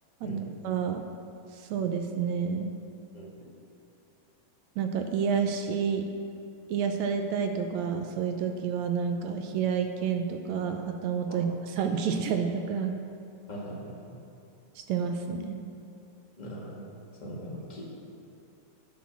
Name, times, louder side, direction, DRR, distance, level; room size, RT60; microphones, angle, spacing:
voice 1, 0.6-1.0 1.5-2.8 4.8-6.0 6.7-13.0 14.9-15.6, right 6 dB, 75° right, 5 dB, 1.8 m, -29 dB
voice 2, 13.5-14.1 16.4-16.9 17.2-17.9, right 1 dB, 15° left, -5 dB, 1.6 m, -39 dB
10.5 x 6.4 x 7.1 m, 2.6 s
omnidirectional pair, 3.5 m